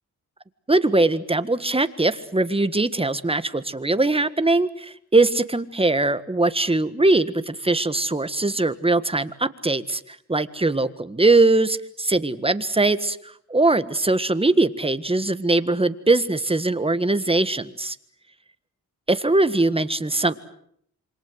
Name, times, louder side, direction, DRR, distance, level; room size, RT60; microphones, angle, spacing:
voice 1, 0.7-18.0 19.1-20.4, right 2 dB, 15° right, 12 dB, 1.6 m, -21 dB
27.5 x 25.0 x 7.9 m, 0.70 s
cardioid pair, 85°, 36 cm